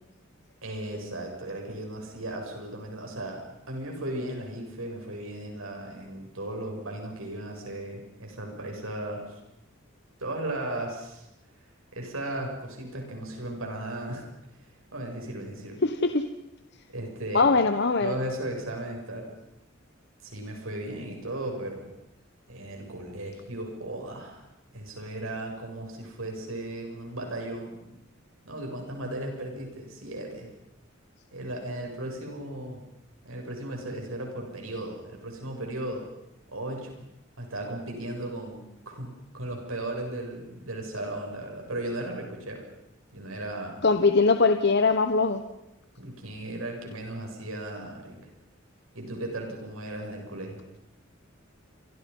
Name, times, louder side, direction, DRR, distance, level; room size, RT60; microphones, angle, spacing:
voice 1, 0.6-9.3 10.2-11.3 11.9-14.2 14.9-15.8 16.9-17.5 18.0-19.3 20.2-21.9 22.5-24.5 24.7-27.8 28.4-30.5 31.3-32.8 33.2-36.1 36.5-37.1 37.4-38.6 38.9-42.7 43.1-43.8 46.0-48.2 48.9-50.6, right 1 dB, 85° right, 2 dB, 7.6 m, -36 dB
voice 2, 15.8-16.2 17.3-18.1 43.8-45.4, left 4 dB, 55° left, 7 dB, 1.2 m, -21 dB
29.5 x 25.0 x 5.6 m, 0.85 s
head